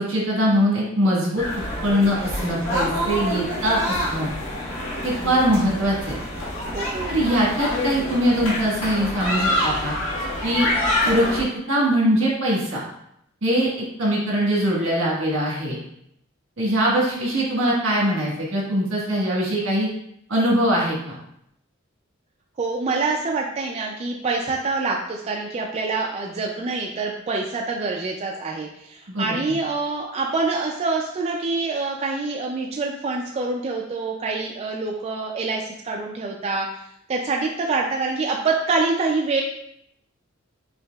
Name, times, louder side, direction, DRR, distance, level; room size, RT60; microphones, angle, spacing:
voice 1, 0.0-1.4 1.8-4.3 5.0-6.2 7.1-9.9 10.4-10.7 11.0-12.8 13.4-13.7 14.0-15.8 16.6-19.9 20.3-21.2 29.1-29.3, equal, 75° right, -4 dB, 1.4 m, -22 dB
sound 1, 1.4-11.4, left 1 dB, 80° left, 1.3 m, -27 dB
voice 2, 6.7-7.1 22.6-36.8 37.1-39.4, right 3 dB, 30° right, 0 dB, 0.3 m, -26 dB
5.8 x 2.8 x 2.3 m, 0.75 s
head